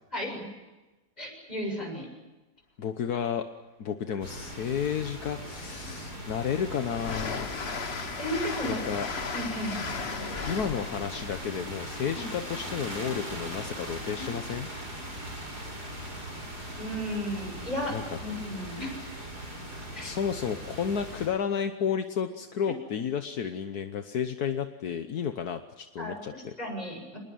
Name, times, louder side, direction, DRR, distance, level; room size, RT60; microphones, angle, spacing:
voice 1, 1.2-2.1 8.2-8.8 9.3-9.8 12.1-12.2 16.8-19.1 19.9-20.2 26.0-26.2 26.6-27.2, equal, 25° left, 2 dB, 7.3 m, -34 dB
voice 2, 2.8-3.5 3.8-7.6 8.6-9.1 10.5-14.7 17.9-18.2 20.0-26.5, left 7 dB, 75° left, 7 dB, 1.6 m, -32 dB
sound 1, 4.2-21.3, equal, 80° right, 8.2 m, -40 dB
Train, 4.9-5.0 5.4-13.2, left 5 dB, 45° left, 1.5 m, -37 dB
27.0 x 20.5 x 8.7 m, 1.1 s
omnidirectional pair, 1.7 m